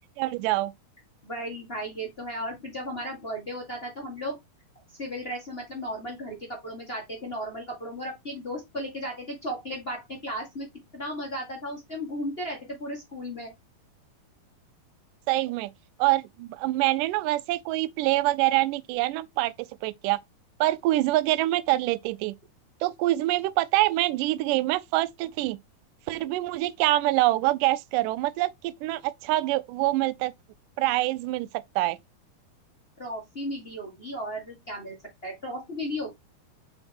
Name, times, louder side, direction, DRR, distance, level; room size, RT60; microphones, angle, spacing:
voice 1, 0.2-0.7 15.3-15.7 16.0-19.5 19.8-20.2 20.6-22.3 22.8-25.6 26.1-30.3 30.8-31.5 31.8-32.0, right 17 dB, 90° right, 1.8 m, -25 dB
voice 2, 1.2-4.4 4.9-10.7 10.9-13.5 33.0-34.9 35.2-36.1, equal, 35° left, 1.0 m, -35 dB
5.7 x 4.8 x 3.5 m
omnidirectional pair, 4.4 m